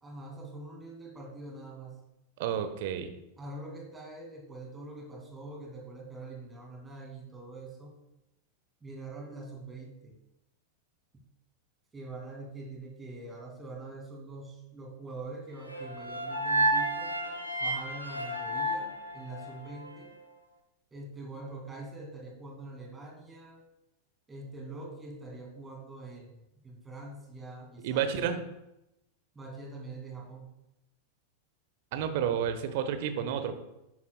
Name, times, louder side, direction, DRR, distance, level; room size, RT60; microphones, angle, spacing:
voice 1, 0.0-2.0 3.4-7.9 8.8-10.1 11.9-17.1 17.6-20.1 20.9-23.6 24.3-28.3 29.3-30.5, right 2 dB, 15° right, -1 dB, 2.4 m, -44 dB
voice 2, 2.4-3.1 27.8-28.4 31.9-33.5, right 8 dB, 50° right, 9 dB, 1.0 m, -30 dB
sound 1, 15.7-19.9, right 1 dB, 90° left, 1.2 m, -31 dB
11.0 x 9.5 x 2.3 m, 0.90 s
figure-of-eight pair, 90°, 0 cm